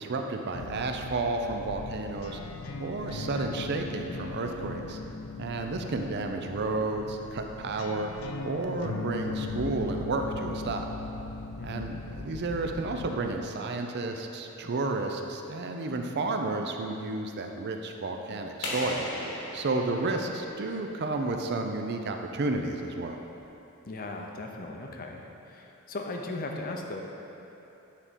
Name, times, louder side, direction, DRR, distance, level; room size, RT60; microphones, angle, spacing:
voice 1, 0.0-2.4 2.8-5.0 5.4-8.1 8.4-10.9 11.6-19.1 19.5-23.2, right 3 dB, 55° right, 4 dB, 0.5 m, -31 dB
sound 1, 0.5-13.2, left 3 dB, 85° left, 0.4 m, -39 dB
voice 2, 11.6-11.9 23.9-27.0, left 2 dB, 45° left, 2 dB, 0.6 m, -38 dB
sound 2, 18.6-21.3, left 1 dB, 70° left, 1.3 m, -37 dB
9.7 x 3.7 x 4.2 m, 3.0 s
head